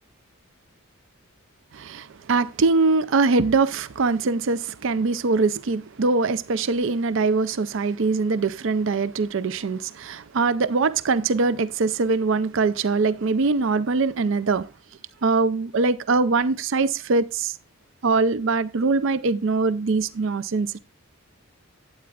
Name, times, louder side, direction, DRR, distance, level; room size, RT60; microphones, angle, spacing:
voice 1, 1.7-14.7 15.2-17.5 18.0-20.8, right 4 dB, 60° right, 0.5 m, -22 dB
12.0 x 8.6 x 2.4 m
head